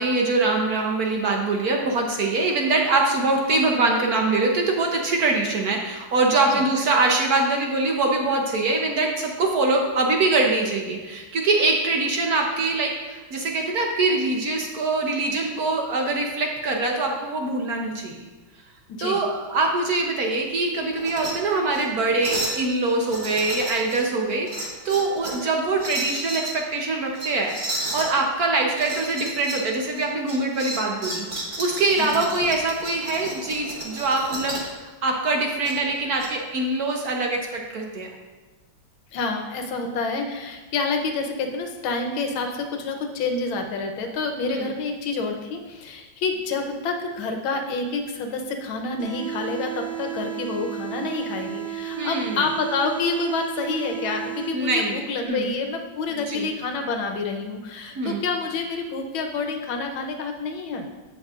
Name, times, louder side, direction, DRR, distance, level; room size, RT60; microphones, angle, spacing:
voice 1, 0.0-18.2 19.0-27.6 27.9-31.3 31.6-34.6 35.0-38.1 44.5-44.7 51.9-52.4 54.5-55.5 56.1-56.5 57.9-58.2, right 3 dB, 60° right, 1 dB, 1.1 m, -23 dB
voice 2, 18.9-19.2 32.1-32.2 39.1-60.9, left 4 dB, 85° left, 4 dB, 1.7 m, -28 dB
sound 1, 21.0-21.3 21.7-21.8 22.2-22.6 23.1-24.0 24.5-25.4 25.8-26.5 27.1-28.1 28.8-29.7 30.0-34.7 35.6-36.3, right 1 dB, 30° right, 1.1 m, -32 dB
sound 2, 49.0-55.0, right 11 dB, 60° left, 2.0 m, -33 dB
15.0 x 5.3 x 2.5 m, 1.2 s
omnidirectional pair, 2.2 m